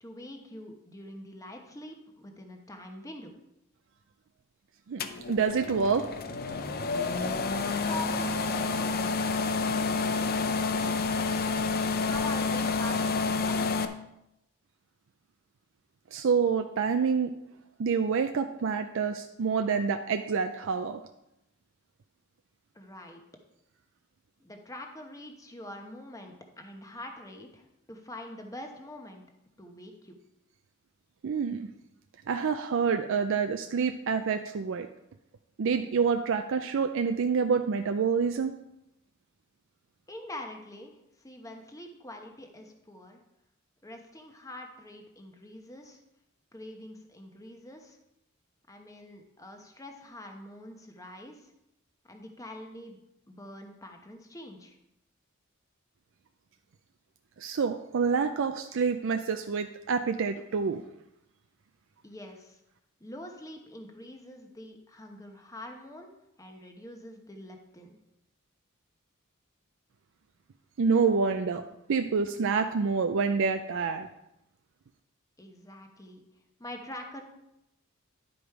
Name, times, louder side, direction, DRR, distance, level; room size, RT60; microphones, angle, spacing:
voice 1, 0.0-3.3 7.9-9.0 9.6-11.4 12.0-14.0 22.7-23.2 24.4-29.2 29.6-30.2 40.1-40.9 41.2-43.2 43.8-46.0 46.5-48.0 48.7-51.5 52.1-53.0 53.3-54.8 62.0-62.6 63.0-66.1 66.4-68.0 75.4-76.2 76.6-77.2, left 1 dB, 15° left, 3 dB, 1.0 m, -45 dB
sound 1, 5.0-13.9, left 4 dB, 45° left, 0.5 m, -29 dB
voice 2, 5.3-6.0 6.5-6.6 7.7-7.8 16.1-17.3 17.8-21.0 31.2-31.7 32.3-34.9 35.6-38.5 57.4-60.8 70.8-71.6 71.9-74.1, right 5 dB, 65° right, 7 dB, 0.4 m, -27 dB
10.5 x 5.1 x 4.7 m, 0.86 s
head